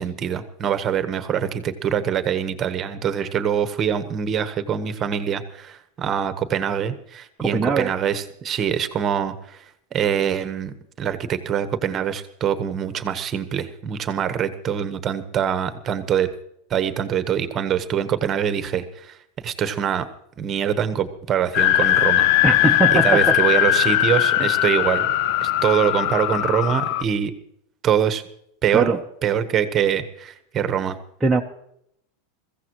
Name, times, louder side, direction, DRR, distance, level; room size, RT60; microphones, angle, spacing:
voice 1, 0.0-9.6 9.9-16.3 16.7-19.2 19.4-20.1 20.4-22.3 22.9-25.1 25.4-27.3 27.8-28.2 28.6-28.9 29.2-31.0, right 8 dB, 25° right, 10 dB, 1.1 m, -24 dB
voice 2, 7.4-7.9 22.4-23.3 24.3-24.5 28.7-29.0 31.2-31.4, right 3 dB, 5° right, -2 dB, 0.7 m, -21 dB
sound 1, 21.5-27.0, left 13 dB, 50° left, 0.5 m, -19 dB
22.0 x 15.5 x 3.0 m, 0.72 s
supercardioid pair, 155°, 0 cm